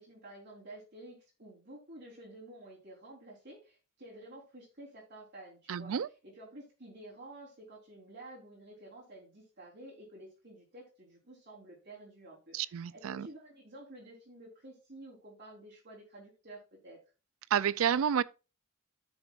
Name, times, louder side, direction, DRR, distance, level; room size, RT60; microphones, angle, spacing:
voice 1, 0.0-6.0 6.2-17.0, right 1 dB, 55° right, 3.7 m, -51 dB
voice 2, 5.7-6.1 12.5-13.3 17.5-18.2, right 8 dB, 80° right, 0.4 m, -30 dB
14.0 x 6.1 x 2.5 m
head